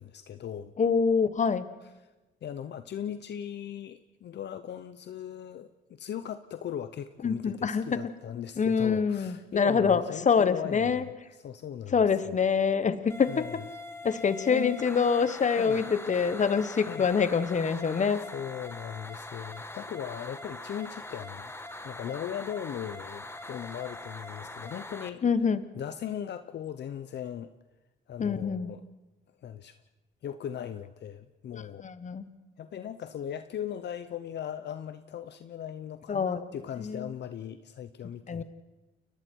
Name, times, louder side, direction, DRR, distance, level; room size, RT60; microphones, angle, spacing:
voice 1, 0.0-0.7 2.4-12.4 13.3-13.6 14.5-14.8 15.6-15.8 16.9-17.1 18.3-21.5 21.8-25.2 25.8-27.5 28.1-28.9 29.4-29.8 30.2-31.9 32.6-38.4, left 9 dB, 60° left, 10 dB, 0.8 m, -38 dB
voice 2, 0.8-1.7 7.2-8.0 8.6-11.0 11.9-13.6 14.0-18.3 25.2-25.7 28.2-28.7 31.5-32.3 36.1-36.4 36.8-37.1 38.3-38.4, left 6 dB, 40° left, 13 dB, 1.4 m, -26 dB
sound 1, 13.1-25.1, left 2 dB, 10° left, 1.5 m, -42 dB
30.0 x 22.5 x 4.7 m, 1.1 s
cardioid pair, 90°, 20 cm